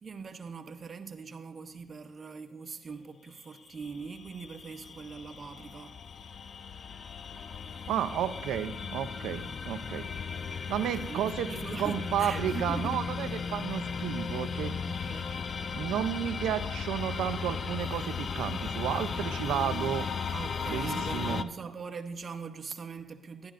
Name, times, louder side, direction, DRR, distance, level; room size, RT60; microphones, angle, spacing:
voice 1, 0.0-6.0 10.8-13.1 14.8-15.4 20.3-23.5, right 5 dB, 40° right, 0.7 m, -42 dB
sound 1, 3.7-21.4, left 6 dB, 45° left, 0.4 m, -36 dB
voice 2, 7.9-10.1 10.7-11.5 11.8-14.8 15.7-20.1 20.7-21.4, right 10 dB, 85° right, 0.5 m, -32 dB
12.0 x 11.5 x 2.5 m
cardioid pair, 90°, 0 cm